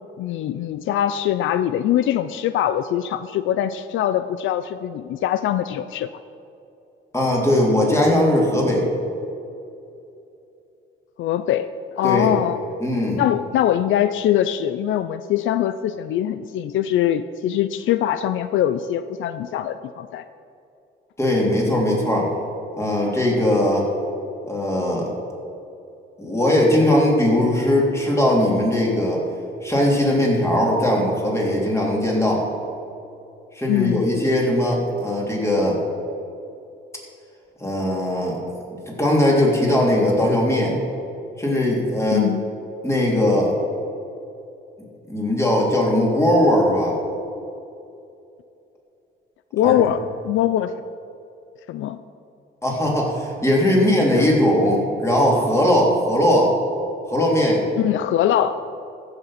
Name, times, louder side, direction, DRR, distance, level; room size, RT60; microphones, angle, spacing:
voice 1, 0.2-6.1 11.2-12.6 13.2-20.2 33.7-34.0 42.1-42.4 49.5-50.7 51.7-52.0 54.2-54.3 57.8-58.6, left 11 dB, 80° left, 12 dB, 0.5 m, -22 dB
voice 2, 7.1-8.9 12.0-12.3 12.8-13.2 21.2-22.3 22.8-23.9 24.5-25.1 26.2-29.2 29.6-32.4 33.5-35.8 37.6-38.4 38.9-40.8 41.4-42.3 42.8-43.6 45.1-47.0 49.6-49.7 52.6-56.5 57.1-57.6, left 1 dB, 15° left, -2 dB, 3.3 m, -19 dB
15.0 x 6.9 x 5.8 m, 2.7 s
cardioid pair, 90°, 20 cm